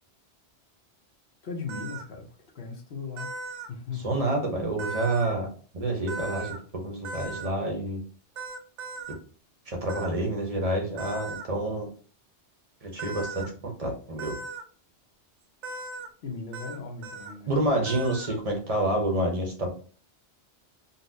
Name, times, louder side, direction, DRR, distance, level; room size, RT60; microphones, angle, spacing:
voice 1, 1.4-3.3 3.7-4.0 16.2-17.7, left 5 dB, 60° left, 1.0 m, -38 dB
sound 1, 1.7-2.0 3.2-3.7 4.8-5.3 6.1-6.6 7.0-7.5 8.4-9.1 9.9-10.1 11.0-11.4 13.0-13.5 14.2-14.6 15.6-16.1 16.5-16.8 17.0-17.3 17.9-18.4, right 3 dB, 85° right, 0.9 m, -37 dB
voice 2, 4.0-5.5 5.7-6.5 6.8-8.0 9.7-11.9 12.8-14.3 17.5-19.7, right 1 dB, 40° right, 0.7 m, -28 dB
4.0 x 2.0 x 2.6 m
omnidirectional pair, 1.2 m